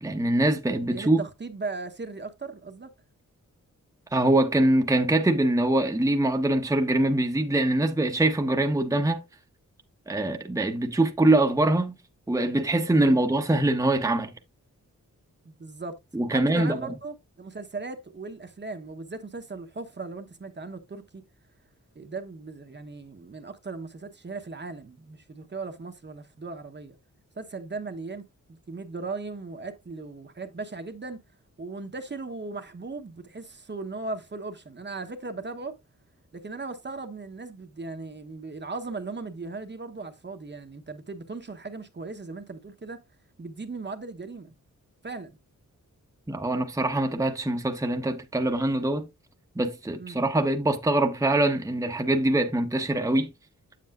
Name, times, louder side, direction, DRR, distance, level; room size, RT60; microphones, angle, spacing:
voice 1, 0.0-1.2 4.1-9.2 10.1-12.0 12.3-14.3 16.1-16.8 46.3-49.1 49.6-53.3, right 1 dB, 10° right, 0.8 m, -23 dB
voice 2, 0.8-2.9 12.9-13.3 15.4-16.0 16.3-21.2 21.9-27.0 27.4-31.2 31.6-35.8 36.3-43.0 43.4-44.5 45.0-45.4 50.0-50.2, right 3 dB, 35° right, 0.9 m, -38 dB
8.2 x 7.6 x 2.4 m
wide cardioid pair, 115°, 32 cm